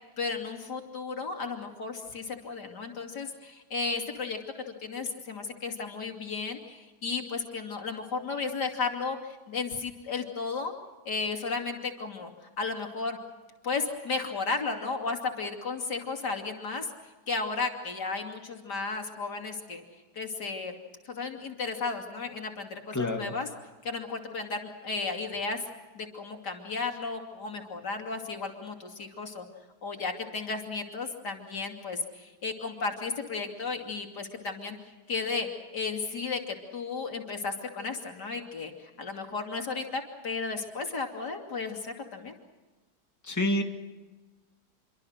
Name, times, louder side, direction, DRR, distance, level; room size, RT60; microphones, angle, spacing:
voice 1, 0.2-4.4 4.8-10.7 11.0-12.3 12.6-13.2 13.6-16.9 17.3-19.8 20.1-20.7 21.0-23.5 23.8-25.6 25.9-29.5 29.8-34.8 35.1-42.3, left 4 dB, 85° left, 3 dB, 3.3 m, -34 dB
voice 2, 22.9-23.3 43.2-43.6, left 1 dB, 10° left, 4 dB, 2.1 m, -28 dB
27.5 x 24.0 x 6.5 m, 1.2 s
omnidirectional pair, 1.7 m